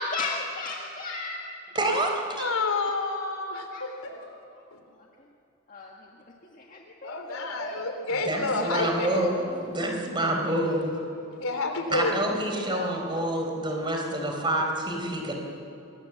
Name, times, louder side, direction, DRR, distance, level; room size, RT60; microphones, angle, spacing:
voice 1, 0.0-1.4 3.7-3.8 4.1-4.3 5.7-6.1 6.5-7.9 12.9-13.1, left 3 dB, 40° left, -1 dB, 1.8 m, -35 dB
voice 2, 1.7-2.4 8.1-11.0 11.9-15.3, right 1 dB, 20° right, 2 dB, 4.2 m, -27 dB
voice 3, 2.4-4.2 7.0-9.3 11.4-12.1 12.7-12.9, left 3 dB, 80° left, 5 dB, 3.6 m, -29 dB
26.5 x 21.5 x 7.3 m, 2.7 s
head